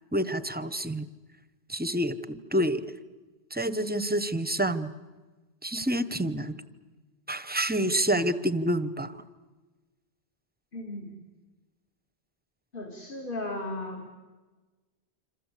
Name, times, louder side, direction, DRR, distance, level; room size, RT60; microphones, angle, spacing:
voice 1, 0.1-1.1 1.7-2.8 3.5-4.9 5.6-6.5 7.3-9.1, right 1 dB, 10° right, 13 dB, 0.9 m, -28 dB
voice 2, 10.7-11.2 12.7-14.1, left 2 dB, 50° left, 2 dB, 2.8 m, -36 dB
27.0 x 26.5 x 8.3 m, 1.3 s
omnidirectional pair, 1.1 m